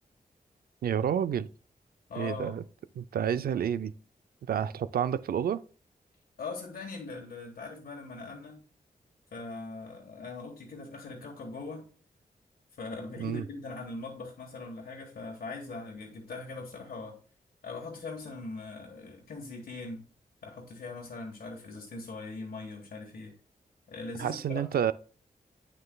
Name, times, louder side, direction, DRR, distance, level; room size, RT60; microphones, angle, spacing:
voice 1, 0.8-1.5 2.2-2.6 3.0-3.9 4.5-5.6 13.2-13.4 24.2-24.9, right 9 dB, 80° right, 0.4 m, -29 dB
voice 2, 2.1-2.6 6.4-8.6 9.3-11.9 12.8-17.2 17.6-20.0 20.4-23.3 23.9-24.6, left 3 dB, 85° left, 1.4 m, -41 dB
9.0 x 6.5 x 2.3 m
wide cardioid pair, 110°, 15 cm